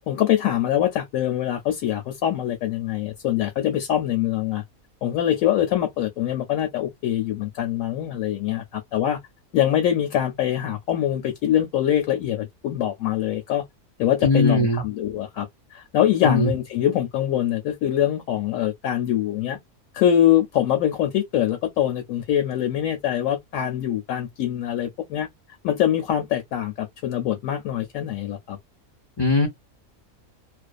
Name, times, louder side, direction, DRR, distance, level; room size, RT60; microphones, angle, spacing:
voice 1, 0.1-4.6 5.0-9.2 9.5-13.6 14.0-19.6 19.9-25.3 25.6-28.6, left 11 dB, 70° left, 0.9 m, -24 dB
voice 2, 14.2-14.8 16.2-16.5 29.2-29.5, left 2 dB, 30° left, 0.4 m, -19 dB
2.5 x 2.1 x 2.3 m
omnidirectional pair, 1.6 m